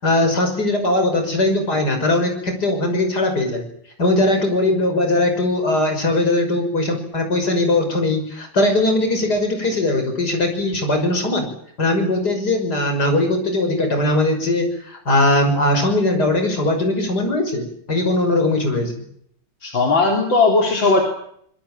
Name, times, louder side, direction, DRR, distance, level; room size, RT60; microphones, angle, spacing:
voice 1, 0.0-3.6 4.0-11.5 11.8-18.9, left 2 dB, 50° left, 5 dB, 6.6 m, -20 dB
voice 2, 19.6-21.0, left 3 dB, 65° left, 1 dB, 4.5 m, -17 dB
26.0 x 22.0 x 7.7 m, 0.68 s
omnidirectional pair, 2.2 m